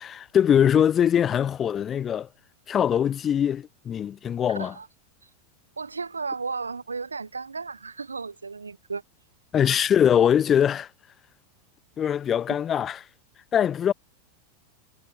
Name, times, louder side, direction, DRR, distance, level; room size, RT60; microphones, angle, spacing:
voice 1, 0.0-2.3 2.7-4.7 9.5-10.9 12.0-13.0 13.5-13.9, left 9 dB, 30° left, 0.3 m, -22 dB
voice 2, 4.5-4.9 5.8-9.0, right 4 dB, 85° right, 0.5 m, -34 dB
figure-of-eight pair, 90°, 0 cm